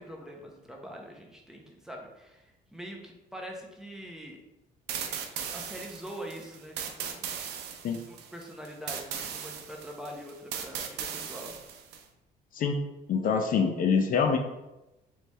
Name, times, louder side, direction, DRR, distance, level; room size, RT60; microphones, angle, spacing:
voice 1, 0.0-4.4 5.0-5.2 5.5-7.2 7.8-11.6, equal, 5° right, 0 dB, 0.7 m, -44 dB
sound 1, 4.9-12.0, right 7 dB, 80° right, 0.6 m, -38 dB
voice 2, 13.1-14.4, left 6 dB, 55° left, 4 dB, 0.5 m, -25 dB
3.3 x 3.2 x 4.1 m, 0.97 s
cardioid pair, 110°, 17 cm